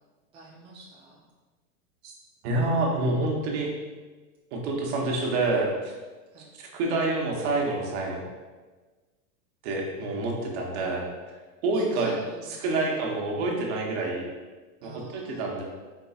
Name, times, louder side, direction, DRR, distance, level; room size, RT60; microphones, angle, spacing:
voice 1, 0.3-1.2 6.3-6.5 11.7-12.6 12.9-13.0 14.8-15.5, right 2 dB, 15° right, -6 dB, 0.5 m, -47 dB
voice 2, 2.4-3.7 4.5-5.9 6.6-8.2 9.6-11.1 11.6-12.2 12.6-14.3 14.8-15.6, right 2 dB, 45° right, 0 dB, 1.0 m, -27 dB
4.6 x 4.0 x 2.4 m, 1.3 s
hypercardioid pair, 130°, 45 cm